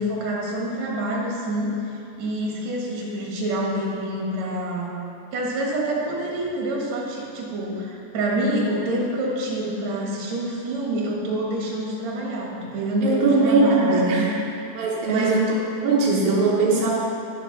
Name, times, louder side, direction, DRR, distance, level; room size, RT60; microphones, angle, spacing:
voice 1, 0.0-4.9 5.3-14.3 15.1-15.4, right 1 dB, 55° right, -3 dB, 2.0 m, -27 dB
voice 2, 13.0-14.3 14.7-15.5 15.8-16.9, right 3 dB, 80° right, -5 dB, 1.6 m, -20 dB
10.5 x 6.1 x 5.8 m, 2.7 s
omnidirectional pair, 5.0 m